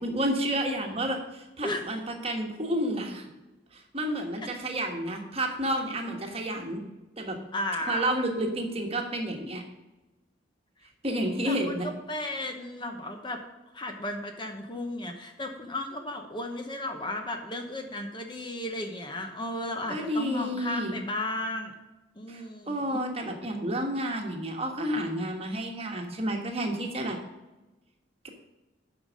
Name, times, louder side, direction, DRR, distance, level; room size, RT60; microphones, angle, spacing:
voice 1, 0.0-3.2 3.7-6.8 7.2-7.4 7.9-9.6 11.0-11.9 19.9-21.0 22.3-27.2 28.2-28.3, right 1 dB, 30° right, 2 dB, 1.4 m, -30 dB
voice 2, 7.5-8.1 11.1-13.4 13.7-21.7 22.2-23.0, left 1 dB, 25° left, 4 dB, 0.9 m, -34 dB
8.7 x 5.7 x 6.3 m, 1.1 s
head